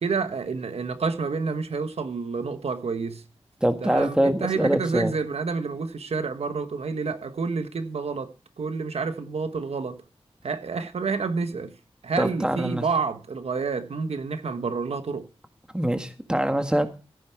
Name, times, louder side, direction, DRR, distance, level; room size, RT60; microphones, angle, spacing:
voice 1, 0.0-3.2 3.8-10.0 10.4-11.7 12.0-15.3, right 4 dB, 90° right, 1.3 m, -29 dB
voice 2, 3.6-5.1 12.2-12.8 15.7-16.9, right 1 dB, 10° right, 1.7 m, -24 dB
15.0 x 9.3 x 4.6 m
wide cardioid pair, 100°, 10 cm